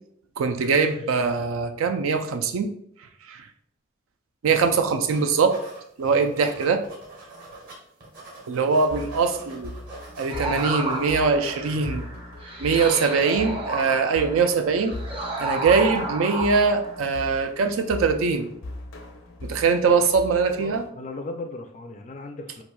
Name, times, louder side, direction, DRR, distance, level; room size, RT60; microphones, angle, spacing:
voice 1, 0.4-2.7 3.3-3.4 4.4-5.6 6.0-6.8 8.5-9.7 10.2-12.0 12.6-15.0 15.4-18.5 19.4-20.9, right 5 dB, 85° right, 7 dB, 0.4 m, -22 dB
sound 1, 4.6-4.8 5.1-7.7 8.0-11.3, right 2 dB, 45° right, 1.0 m, -45 dB
sound 2, 8.9-20.9, left 1 dB, 80° left, 0.6 m, -40 dB
sound 3, 10.3-17.2, right 2 dB, 25° right, 0.5 m, -32 dB
voice 2, 20.6-22.6, left 2 dB, 35° left, 5 dB, 0.3 m, -37 dB
4.2 x 2.5 x 2.2 m, 0.69 s
head